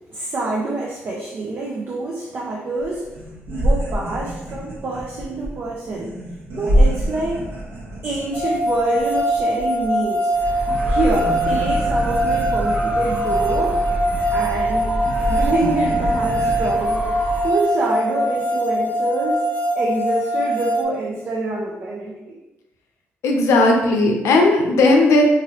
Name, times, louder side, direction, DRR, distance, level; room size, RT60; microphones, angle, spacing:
voice 1, 0.1-3.1 3.6-6.2 6.6-7.4 8.0-10.3 10.9-13.8 14.3-15.0 15.3-17.1 17.4-19.5 19.7-22.4, right 2 dB, 50° right, -2 dB, 0.5 m, -26 dB
sound 1, 2.8-2.9 3.1-10.1 10.4-16.8, equal, 70° right, 1.0 m, -26 dB
sound 2, 8.3-20.8, equal, 30° left, 0.5 m, -22 dB
sound 3, 10.3-17.5, equal, 25° right, 0.9 m, -29 dB
voice 2, 23.2-25.2, left 2 dB, 85° left, 2 dB, 0.5 m, -15 dB
2.9 x 2.6 x 2.9 m, 0.98 s
cardioid pair, 95°, 5 cm